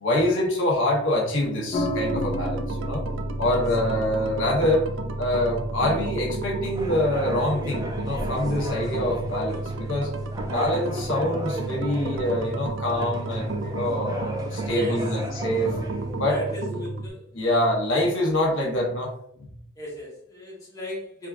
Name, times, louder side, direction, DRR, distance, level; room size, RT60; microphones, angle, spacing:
voice 1, 0.0-3.0 3.4-4.9 5.2-10.1 10.4-15.8 16.1-16.4 17.3-19.1, left 1 dB, 75° left, -1 dB, 1.0 m, -25 dB
sound 1, 1.7-10.3, equal, 35° left, 0.4 m, -34 dB
sound 2, 1.7-17.1, right 2 dB, 80° right, 0.5 m, -32 dB
sound 3, 6.7-16.3, equal, 20° right, 0.7 m, -36 dB
voice 2, 14.7-15.2 16.3-17.6 19.8-21.3, equal, 20° left, -5 dB, 1.2 m, -35 dB
4.0 x 3.5 x 2.5 m, 0.67 s
head